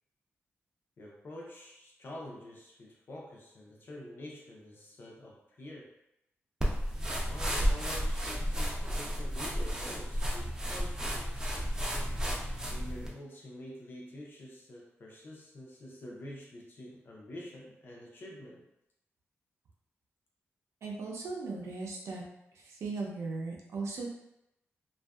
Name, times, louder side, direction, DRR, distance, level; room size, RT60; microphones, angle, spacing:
voice 1, 1.0-5.9 7.0-11.5 12.7-18.6, left 1 dB, 50° left, -3 dB, 0.5 m, -47 dB
sound 1, 6.6-13.1, equal, 15° right, 0.4 m, -32 dB
voice 2, 20.8-22.2 22.8-24.2, right 3 dB, 80° right, -1 dB, 0.6 m, -37 dB
2.6 x 2.3 x 2.3 m, 0.84 s
wide cardioid pair, 165°, 5 cm